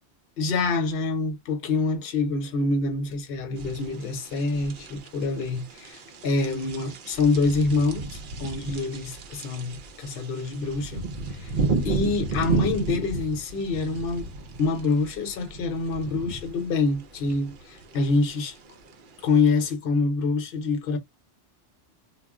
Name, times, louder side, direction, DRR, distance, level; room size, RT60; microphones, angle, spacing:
voice 1, 0.4-11.0 11.3-11.6 11.8-14.3 14.6-18.6 19.2-21.0, left 3 dB, 60° left, 0.9 m, -26 dB
sound 1, 3.6-19.7, right 3 dB, 55° right, 0.6 m, -34 dB
2.4 x 2.0 x 3.5 m
omnidirectional pair, 1.2 m